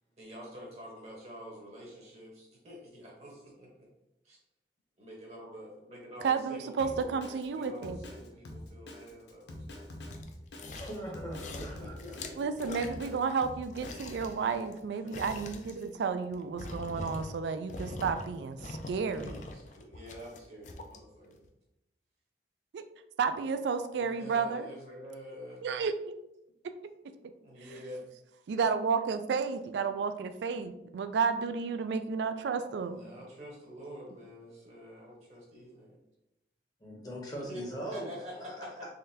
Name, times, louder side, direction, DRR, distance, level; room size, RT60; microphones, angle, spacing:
voice 1, 0.2-3.9 4.2-4.4 5.0-7.2 7.5-10.0 11.5-12.8 14.9-15.5 19.1-21.5 23.9-25.6 27.4-28.1 32.8-36.0 37.3-38.9, equal, 40° right, -2 dB, 0.9 m, -47 dB
voice 2, 6.2-8.0 12.4-19.4 22.7-22.8 23.2-24.7 25.6-26.1 28.5-33.0, right 5 dB, 80° right, 10 dB, 0.3 m, -32 dB
Drum kit, 6.8-14.1, left 1 dB, 80° left, 0.7 m, -45 dB
sound 1, 10.1-11.1 11.3-13.4 13.7-17.4 17.7-18.3 18.6-21.0 21.4-21.5, left 2 dB, 45° left, 0.4 m, -43 dB
voice 3, 10.7-12.2 36.8-38.1 38.4-38.5, right 1 dB, 20° left, -2 dB, 0.7 m, -40 dB
3.8 x 3.3 x 2.7 m, 0.88 s
head